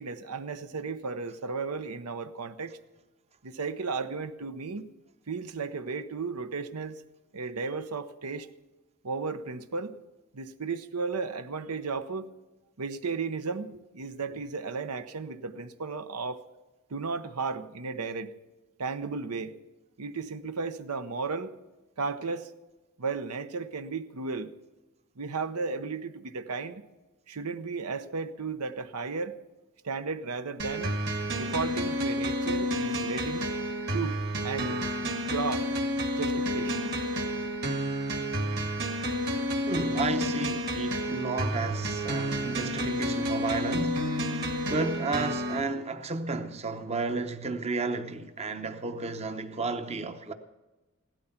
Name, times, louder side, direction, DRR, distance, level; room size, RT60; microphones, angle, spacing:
voice 1, 0.0-2.8 3.4-4.9 5.3-7.0 7.3-8.5 9.0-10.0 10.3-12.3 12.8-16.4 16.9-18.3 18.8-19.6 20.0-21.5 22.0-22.5 23.0-24.5 25.2-26.8 27.3-29.4 29.8-30.9 31.3-33.5 33.9-34.8 35.3-35.7 36.2-37.0, right 4 dB, 90° right, 0.8 m, -34 dB
sound 1, 30.6-45.6, equal, 50° right, 1.9 m, -30 dB
voice 2, 39.7-44.1 44.7-50.3, right 3 dB, 30° right, 0.8 m, -32 dB
16.5 x 12.5 x 5.8 m
head